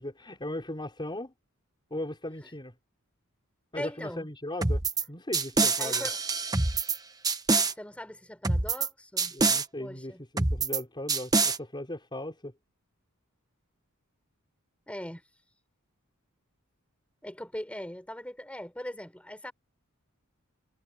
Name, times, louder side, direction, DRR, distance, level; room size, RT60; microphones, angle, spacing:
voice 1, 0.0-1.3 1.9-2.7 3.7-4.8 5.1-6.1 9.3-12.5, left 1 dB, 20° left, 4.9 m, -37 dB
voice 2, 3.7-4.3 5.8-6.2 7.8-9.4 9.8-10.2 14.9-15.2 17.2-19.5, left 1 dB, 5° left, 4.5 m, -40 dB
sound 1, 4.6-5.0 5.3-7.0 7.2-7.7 8.4-8.9 9.2-9.6 10.4-10.8 11.1-11.6, right 3 dB, 15° right, 1.1 m, -25 dB
head